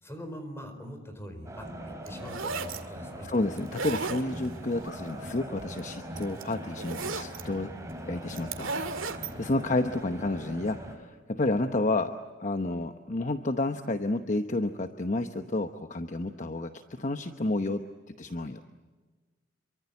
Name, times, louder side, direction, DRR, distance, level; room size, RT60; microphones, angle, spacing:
voice 1, 0.0-3.3, equal, 15° left, 7 dB, 4.6 m, -43 dB
sound 1, 1.4-10.9, equal, 15° right, 4.0 m, -42 dB
sound 2, 2.1-2.8 3.6-4.6 5.8-5.9 6.2-7.4 8.3-9.3, right 4 dB, 85° right, 2.2 m, -34 dB
voice 2, 3.2-7.7 8.1-8.7 9.2-12.1 12.4-17.8 18.1-18.6, left 2 dB, 40° left, 7 dB, 0.9 m, -30 dB
sound 3, 4.4-5.1, left 1 dB, 65° left, 7.8 m, -52 dB
28.0 x 24.0 x 8.3 m, 1.3 s
head